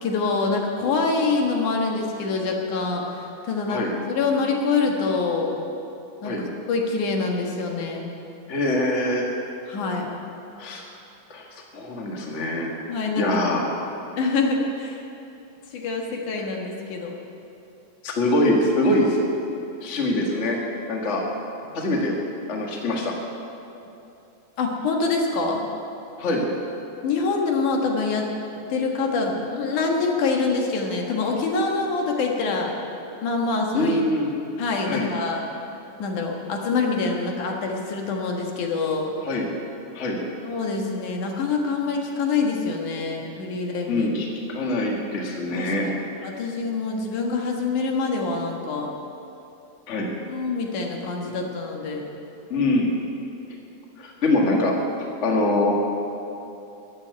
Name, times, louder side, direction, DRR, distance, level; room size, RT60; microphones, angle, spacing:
voice 1, 0.0-5.6 6.2-8.1 9.7-10.1 12.9-13.3 13.9-15.0 15.7-17.2 21.7-21.8 24.6-25.6 27.0-28.3 28.7-32.8 33.2-34.0 34.6-35.4 36.0-39.1 40.4-44.1 45.5-45.9 46.2-48.9 50.3-52.0, left 4 dB, 80° left, 1 dB, 3.0 m, -25 dB
voice 2, 8.5-9.3 10.6-10.8 11.3-11.4 11.7-12.7 13.2-13.6 18.0-19.2 19.8-20.6 20.9-21.2 21.7-22.1 22.5-23.2 26.2-26.4 33.7-34.3 34.9-35.1 39.2-39.5 39.9-40.2 43.9-45.8 46.2-46.3 49.9-50.1 51.3-51.4 52.5-52.9 54.0-54.7 55.2-55.7, left 1 dB, 30° left, -1 dB, 1.5 m, -23 dB
14.0 x 8.1 x 9.4 m, 2.8 s
omnidirectional pair, 3.5 m